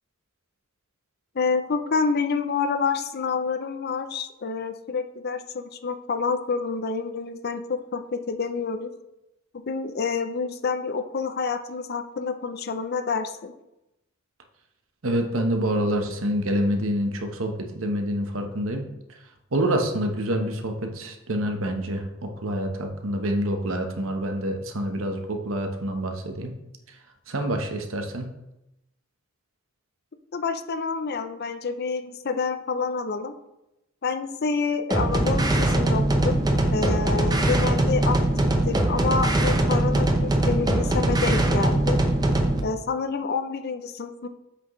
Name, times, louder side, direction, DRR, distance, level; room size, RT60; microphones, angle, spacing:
voice 1, 1.3-8.9 9.7-13.5 30.3-33.3 34.0-36.4 36.7-38.2 38.7-42.0 42.6-44.3, left 5 dB, 50° left, 8 dB, 0.5 m, -28 dB
voice 2, 15.0-19.2 19.5-26.5 27.3-28.3, right 1 dB, 80° right, 4 dB, 1.1 m, -27 dB
sound 1, 34.9-42.6, right 1 dB, 20° right, 0.7 m, -22 dB
7.9 x 6.1 x 3.1 m, 0.89 s
head